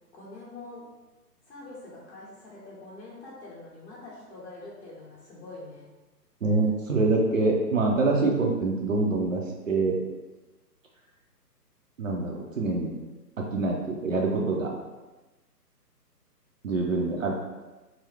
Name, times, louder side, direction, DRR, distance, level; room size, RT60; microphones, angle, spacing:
voice 1, 0.1-0.8 1.5-5.9, left 2 dB, 40° left, -7 dB, 1.4 m, -44 dB
voice 2, 6.4-10.0 12.0-12.9 13.5-14.7 16.6-17.3, right 3 dB, 55° right, -1 dB, 0.6 m, -25 dB
3.8 x 2.0 x 3.2 m, 1.1 s
figure-of-eight pair, 145°, 49 cm